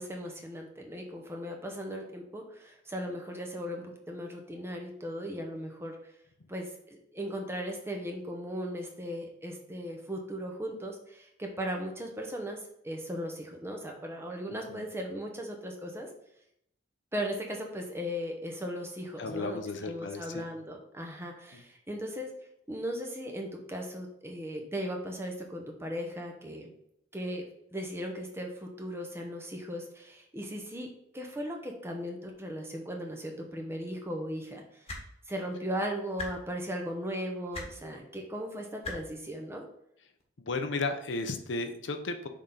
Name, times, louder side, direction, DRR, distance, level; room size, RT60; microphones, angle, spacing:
voice 1, 0.0-6.0 6.5-16.1 17.1-22.3 22.7-26.7 27.1-27.4 27.7-30.9 31.1-34.6 35.3-39.6, equal, 15° right, 1 dB, 0.9 m, -37 dB
voice 2, 14.5-14.8 19.2-20.5 21.5-21.6 40.4-42.3, left 3 dB, 70° left, 7 dB, 0.7 m, -34 dB
sound 1, 34.9-35.0 36.2-36.3 37.5-37.7 38.8-39.0 40.2-40.3, left 3 dB, 30° left, 1.3 m, -37 dB
6.4 x 3.8 x 3.9 m, 0.74 s
head